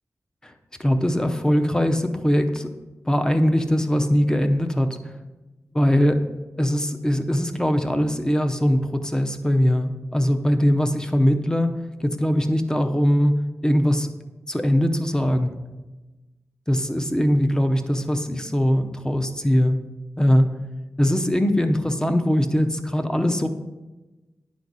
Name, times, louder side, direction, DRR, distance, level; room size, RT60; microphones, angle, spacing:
voice 1, 0.8-2.7 3.1-5.1 5.7-6.2 6.6-13.4 13.6-14.1 14.5-15.5 16.7-19.8 20.2-20.6 21.0-23.5, equal, 10° left, 6 dB, 0.7 m, -21 dB
10.5 x 4.0 x 6.1 m, 1.1 s
wide cardioid pair, 110°, 6 cm